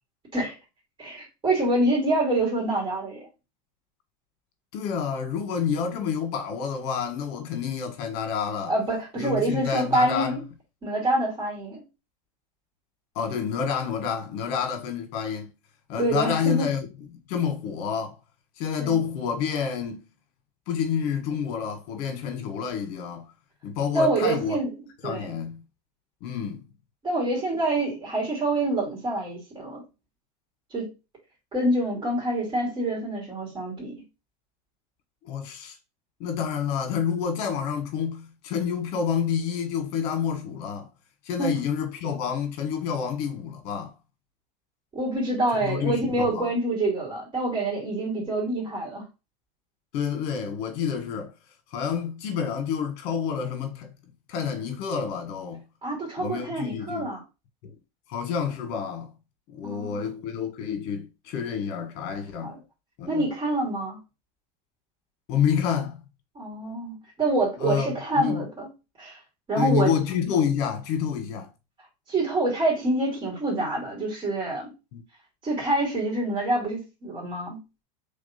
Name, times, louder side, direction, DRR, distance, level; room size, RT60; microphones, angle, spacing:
voice 1, 1.0-3.3 8.7-10.4 10.8-11.8 16.0-16.7 18.8-19.0 23.9-24.7 25.0-25.4 27.0-29.8 30.7-30.9 31.5-34.0 41.4-41.6 44.9-49.1 55.8-57.2 59.6-60.1 62.4-62.6 63.1-64.0 66.3-68.7 69.0-69.2 69.5-69.9 72.1-74.7 75.4-77.6, right 2 dB, 25° right, 2.6 m, -26 dB
voice 2, 4.7-8.7 9.2-10.4 13.1-15.5 15.9-16.9 17.3-18.2 18.6-20.0 20.7-23.3 23.6-24.6 25.0-25.6 26.2-26.6 35.2-35.8 36.2-40.9 41.2-43.9 45.5-46.5 49.9-51.3 51.7-53.9 54.3-55.6 56.2-57.1 57.6-57.8 58.1-59.1 59.5-62.6 63.0-63.3 65.3-66.0 67.6-68.5 69.6-71.5 74.9-75.0, left 7 dB, 55° left, 1.4 m, -28 dB
3.5 x 3.1 x 4.2 m
supercardioid pair, 135°, 20 cm